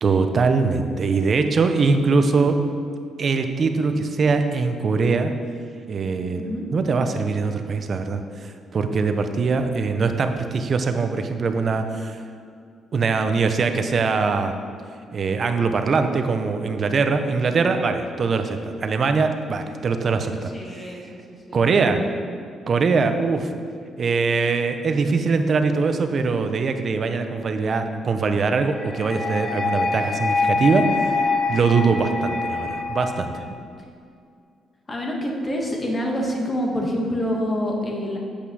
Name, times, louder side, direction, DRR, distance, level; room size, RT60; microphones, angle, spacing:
voice 1, 0.0-2.6 3.2-5.3 5.9-12.2 12.9-14.6 15.1-21.0 21.5-22.0 22.7-23.5 24.0-30.9 31.5-33.4, right 4 dB, 45° right, 7 dB, 0.8 m, -22 dB
voice 2, 6.3-6.7 20.5-22.1 34.9-38.2, equal, 25° left, 0 dB, 1.9 m, -27 dB
sound 1, 28.7-33.7, left 4 dB, 45° left, 1.3 m, -25 dB
8.4 x 5.7 x 6.3 m, 2.3 s
cardioid pair, 90°, 0 cm